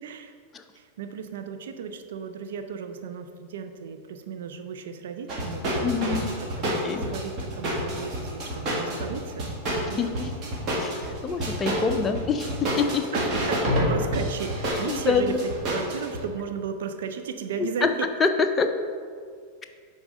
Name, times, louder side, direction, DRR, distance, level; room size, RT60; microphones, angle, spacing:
voice 1, 0.0-0.3 0.8-9.5 9.9-10.2 13.1-17.9, right 6 dB, 60° right, 8 dB, 0.5 m, -35 dB
sound 1, 5.3-16.2, equal, 35° right, 1.6 m, -28 dB
voice 2, 5.8-6.3 6.8-7.0 10.0-10.3 10.8-12.5 12.8-13.0 14.9-15.4 17.8-17.9 18.2-18.3 18.6-18.7, left 5 dB, 20° left, 6 dB, 0.5 m, -25 dB
8.0 x 3.7 x 5.1 m, 2.1 s
figure-of-eight pair, 90°, 0 cm